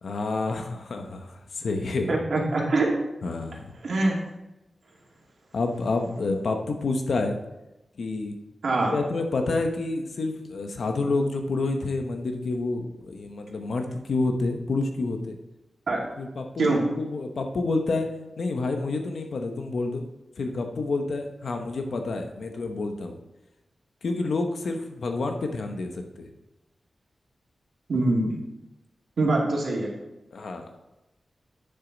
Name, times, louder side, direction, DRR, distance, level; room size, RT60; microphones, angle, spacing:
voice 1, 0.0-2.1 3.2-3.7 5.5-7.4 8.0-8.4 8.9-15.4 16.2-18.1 18.4-20.0 20.4-23.2 24.0-26.3 30.3-30.7, left 3 dB, 75° left, 5 dB, 1.0 m, -28 dB
voice 2, 2.1-2.9 3.8-4.2 8.6-8.9 15.9-16.0 16.6-16.8 27.9-28.4 29.2-29.9, right 2 dB, 75° right, -3 dB, 2.4 m, -23 dB
9.4 x 7.1 x 4.0 m, 0.98 s
wide cardioid pair, 145°, 0 cm